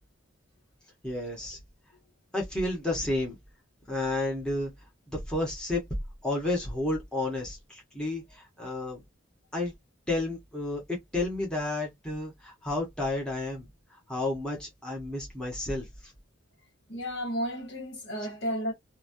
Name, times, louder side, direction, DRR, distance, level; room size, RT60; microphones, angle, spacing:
voice 1, 1.0-1.6 2.3-3.4 3.9-4.7 5.1-5.8 6.2-9.0 9.5-9.7 10.1-15.9, left 2 dB, 5° left, 1.0 m, -31 dB
voice 2, 16.9-18.7, equal, 60° left, 1.5 m, -32 dB
3.0 x 2.2 x 2.6 m
head